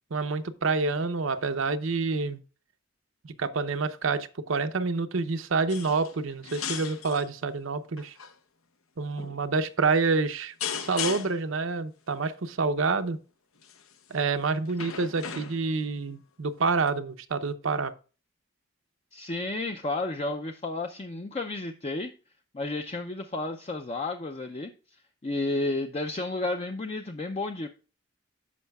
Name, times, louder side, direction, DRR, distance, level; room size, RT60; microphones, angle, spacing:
voice 1, 0.1-2.4 3.2-8.2 9.0-13.2 14.1-17.9, right 4 dB, 70° right, 0.7 m, -28 dB
sound 1, 5.7-6.2 6.4-7.3 8.0-8.3 9.2-9.4 10.6-11.5 13.6-13.9 14.7-15.8 16.9-17.0, left 8 dB, 90° left, 0.8 m, -36 dB
voice 2, 19.1-22.1 22.5-24.7 25.2-27.7, left 2 dB, 30° left, 0.4 m, -32 dB
13.5 x 5.5 x 2.3 m
head